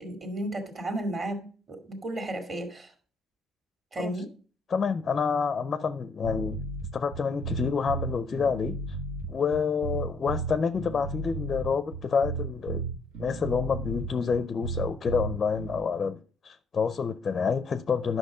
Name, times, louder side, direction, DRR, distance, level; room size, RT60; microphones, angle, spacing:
voice 1, 0.0-2.9 3.9-4.3, right 1 dB, 35° right, 2.1 m, -33 dB
voice 2, 4.7-6.6 6.9-8.8 9.3-12.8 13.2-18.2, left 5 dB, 30° left, 0.5 m, -28 dB
sound 1, 6.2-15.8, right 4 dB, 90° right, 1.4 m, -34 dB
10.5 x 6.0 x 4.9 m
cardioid pair, 145°, 0 cm